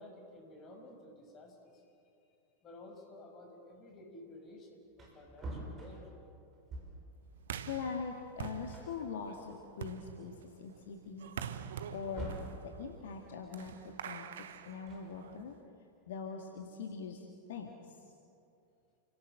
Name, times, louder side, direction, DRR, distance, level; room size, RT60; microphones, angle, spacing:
voice 1, 0.0-1.9 2.6-6.4, left 1 dB, 30° left, 2 dB, 5.9 m, -53 dB
Wood, 4.5-4.6 4.9-7.2 8.3-8.4 8.7-9.9 10.4-10.5 11.7-12.6 14.7-15.6, right 1 dB, 25° right, 6.1 m, -46 dB
sound 1, 7.4-15.5, right 8 dB, 60° right, 1.1 m, -46 dB
voice 2, 7.7-11.3 11.9-12.3 12.6-14.3 14.6-15.5 16.1-18.0, left 5 dB, 60° left, 2 dB, 2.0 m, -42 dB
29.0 x 18.0 x 7.8 m, 2.6 s
figure-of-eight pair, 90°, 0 cm